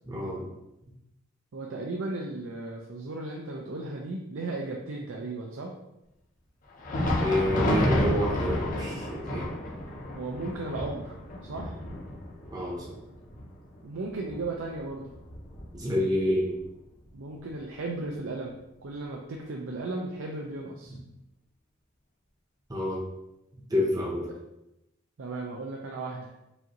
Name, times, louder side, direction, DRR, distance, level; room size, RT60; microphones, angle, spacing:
voice 1, 0.1-0.4 7.2-9.5 12.5-12.9 15.7-16.5 20.9-21.0 22.7-23.0 23.7-24.3, left 1 dB, 20° right, -4 dB, 0.7 m, -28 dB
voice 2, 1.5-5.7 10.1-11.7 13.8-15.1 17.1-21.0 25.2-26.3, right 2 dB, 75° right, 0 dB, 0.5 m, -35 dB
Thunder, 6.7-16.1 16.5-16.6 17.3-17.5 18.5-18.6, left 1 dB, 40° left, 0.6 m, -31 dB
5.0 x 2.5 x 2.9 m, 0.90 s
head